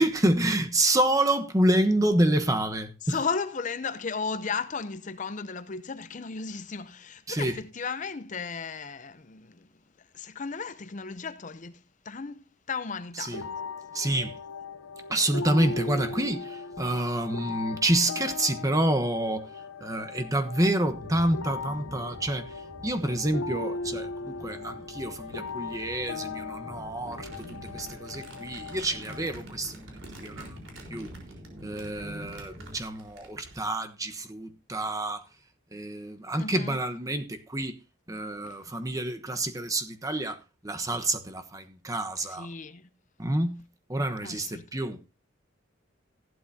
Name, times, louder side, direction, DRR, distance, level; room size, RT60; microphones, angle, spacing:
voice 1, 0.0-3.2 7.3-7.5 13.2-13.4 13.9-14.4 15.1-19.5 19.8-22.4 22.8-27.3 27.7-29.9 30.2-30.6 30.9-31.1 31.6-35.2 35.7-37.7 38.1-40.4 40.6-42.5 43.2-43.6 43.9-45.0, right 1 dB, 15° right, 1.1 m, -28 dB
voice 2, 3.0-9.7 10.1-11.7 12.0-13.4 36.4-36.8 38.4-38.6 42.2-42.9 44.2-44.7, left 5 dB, 40° left, 0.6 m, -35 dB
sound 1, 13.3-29.3, left 4 dB, 85° left, 0.8 m, -38 dB
sound 2, 20.9-32.7, equal, 30° right, 2.5 m, -46 dB
Crumpling crinkling, 27.1-33.7, right 2 dB, 75° right, 4.1 m, -50 dB
15.5 x 11.5 x 2.8 m
head